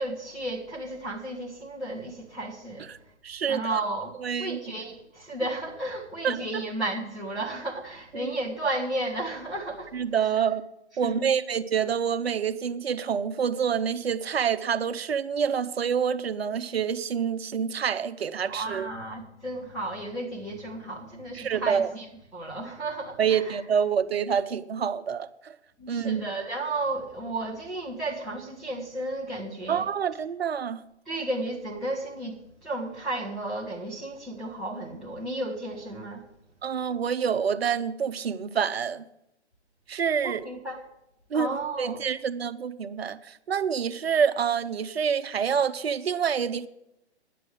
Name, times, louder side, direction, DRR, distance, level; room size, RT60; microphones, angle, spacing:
voice 1, 0.0-2.9 3.5-10.0 11.0-11.3 18.5-22.0 22.3-23.6 25.8-29.8 31.1-36.2 40.2-40.8 41.3-42.0, right 2 dB, ahead, 0.4 m, -33 dB
voice 2, 3.2-3.8 4.2-4.6 6.2-6.6 8.1-8.3 9.9-10.6 11.0-18.9 21.3-21.9 23.2-25.6 25.9-26.3 29.7-30.8 36.6-39.0 39.9-40.4 41.3-41.5 41.8-46.7, right 7 dB, 60° right, 0.8 m, -27 dB
10.0 x 7.6 x 7.7 m
figure-of-eight pair, 125°, 34 cm